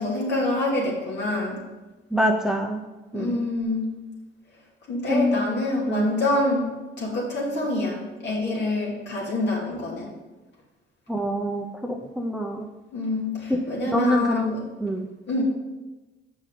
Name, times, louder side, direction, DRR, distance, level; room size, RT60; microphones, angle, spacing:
voice 1, 0.0-1.6 3.1-3.9 4.9-6.7 7.0-10.1 12.9-14.6 15.3-15.4, left 2 dB, 60° left, -3 dB, 2.8 m, -26 dB
voice 2, 2.1-2.8 3.1-3.5 5.1-5.4 5.9-6.2 11.1-12.7 13.5-15.1, equal, 5° right, 3 dB, 0.7 m, -25 dB
7.4 x 5.4 x 5.0 m, 1.1 s
cardioid pair, 90°, 20 cm